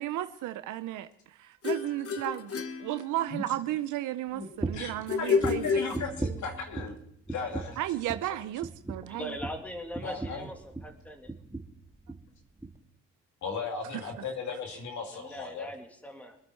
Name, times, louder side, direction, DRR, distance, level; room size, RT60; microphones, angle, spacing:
voice 1, 0.0-5.6 7.8-9.3, right 14 dB, 85° right, 0.6 m, -34 dB
sound 1, 1.6-3.6 5.1-6.6, left 5 dB, 50° left, 1.2 m, -30 dB
sound 2, 4.6-5.0 5.4-7.0 7.3-7.8 8.1-8.3 8.6-11.0 11.3-11.8 12.1-12.3 12.6-12.7, right 3 dB, 10° right, 1.6 m, -37 dB
voice 2, 5.2-7.0 7.3-7.8 10.0-10.5 13.4-15.7, left 5 dB, 70° left, 2.7 m, -36 dB
voice 3, 9.1-11.3 15.1-16.4, equal, 5° left, 2.0 m, -41 dB
24.5 x 8.8 x 4.5 m
cardioid pair, 90°, 30 cm